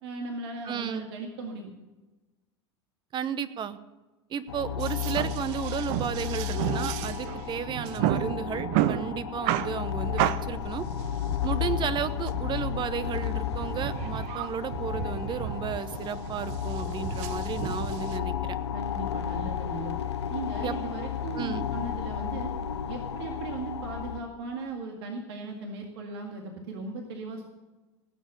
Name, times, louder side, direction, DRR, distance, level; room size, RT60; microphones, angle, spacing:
voice 1, 0.0-1.7 18.7-20.0 20.3-22.5 22.9-27.5, right 3 dB, 75° right, 2 dB, 2.0 m, -37 dB
voice 2, 0.6-1.1 3.1-3.8 4.3-10.9 11.4-18.6 20.6-20.8 21.3-21.7, right 8 dB, 35° right, 14 dB, 1.0 m, -33 dB
sound 1, 4.5-24.2, left 9 dB, 90° left, 0.8 m, -33 dB
sound 2, 4.8-18.2, right 12 dB, 55° right, 0.7 m, -33 dB
18.5 x 7.4 x 6.9 m, 1.2 s
hypercardioid pair, 95°, 14 cm